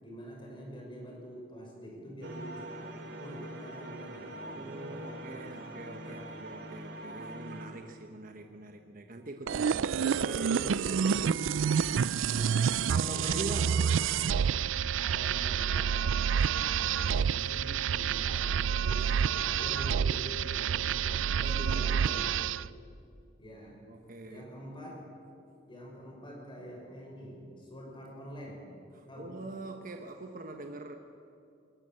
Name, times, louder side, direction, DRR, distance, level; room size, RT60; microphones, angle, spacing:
voice 1, 0.0-2.8 3.2-5.5 6.0-6.5 12.2-12.7 13.0-13.7 15.0-16.1 16.6-19.1 19.4-22.3 23.4-23.9 24.3-25.0 25.7-28.7 29.1-29.3, equal, 25° left, -1 dB, 5.9 m, -46 dB
sound 1, 2.2-7.7, right 1 dB, 65° right, 2.9 m, -43 dB
voice 2, 4.5-11.2 12.9-13.8 21.4-22.3 23.9-24.4 28.9-31.0, right 2 dB, 45° right, 5 dB, 1.1 m, -43 dB
sound 2, 9.5-22.7, right 7 dB, 85° right, 0.4 m, -28 dB
21.0 x 19.5 x 7.7 m, 2.5 s
head